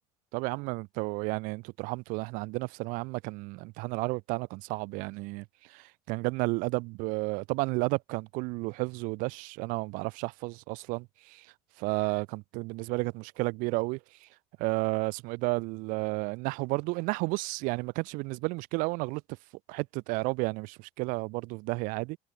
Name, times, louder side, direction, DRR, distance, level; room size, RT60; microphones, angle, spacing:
voice 1, 0.3-11.5 11.8-14.3 14.6-19.2 19.7-22.2, right 26 dB, 70° right, 1.3 m, -32 dB
cardioid pair, 145°, 14 cm